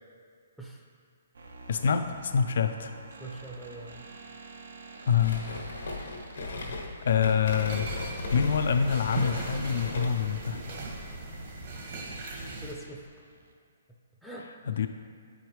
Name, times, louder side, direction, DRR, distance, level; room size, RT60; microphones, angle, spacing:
sound 1, 1.3-13.5, right 2 dB, 85° right, 0.7 m, -49 dB
voice 1, 1.7-3.0 5.1-5.4 6.0-6.1 7.0-7.9 8.3-10.6 14.7-14.9, left 7 dB, 65° left, 8 dB, 0.3 m, -26 dB
voice 2, 3.2-4.1 12.3-13.0 14.2-14.5, right 2 dB, ahead, -3 dB, 0.5 m, -43 dB
sound 2, 5.2-10.3, left 2 dB, 90° left, 1.3 m, -37 dB
sound 3, 7.4-12.7, right 3 dB, 50° right, 1.1 m, -39 dB
8.8 x 4.9 x 3.1 m, 2.2 s
hypercardioid pair, 155°, 0 cm